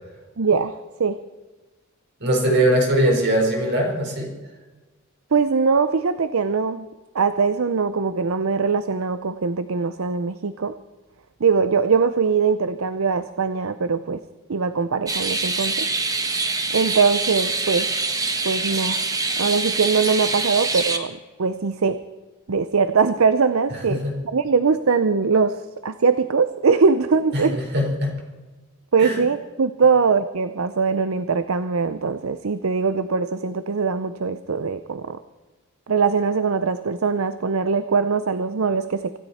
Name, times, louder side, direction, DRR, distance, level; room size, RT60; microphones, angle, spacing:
voice 1, 0.4-1.2 5.3-6.9 7.1-10.7 11.4-14.2 14.5-15.9 16.7-17.9 18.4-19.0 19.4-22.0 22.5-27.6 28.9-35.2 35.9-39.2, right 5 dB, 70° right, 12 dB, 0.6 m, -21 dB
voice 2, 2.2-4.3 23.9-24.1 27.3-28.2 29.0-29.2, right 1 dB, 55° right, 0 dB, 4.5 m, -21 dB
sound 1, 15.1-21.0, right 3 dB, 15° right, 1.3 m, -25 dB
25.5 x 13.0 x 4.3 m, 1.3 s
head